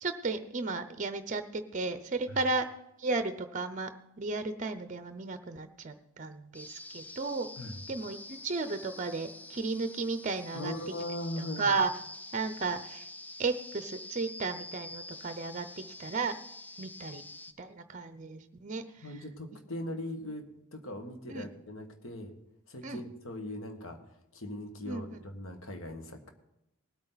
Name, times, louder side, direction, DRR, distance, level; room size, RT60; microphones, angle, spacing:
voice 1, 0.0-2.7 3.0-3.9 4.2-7.5 7.9-10.7 11.4-11.9 12.3-13.1 13.4-15.7 16.0-16.3 16.8-17.2 17.6-19.1 21.3-21.5 22.8-23.0 24.9-25.0, right 3 dB, 35° right, 10 dB, 0.6 m, -34 dB
sound 1, 6.5-17.5, left 2 dB, 5° left, 0.4 m, -46 dB
voice 2, 10.5-11.7 19.0-20.4 20.7-22.3 22.7-24.0 24.3-26.3, left 1 dB, 60° left, 5 dB, 1.7 m, -40 dB
19.0 x 8.7 x 4.0 m, 0.85 s
head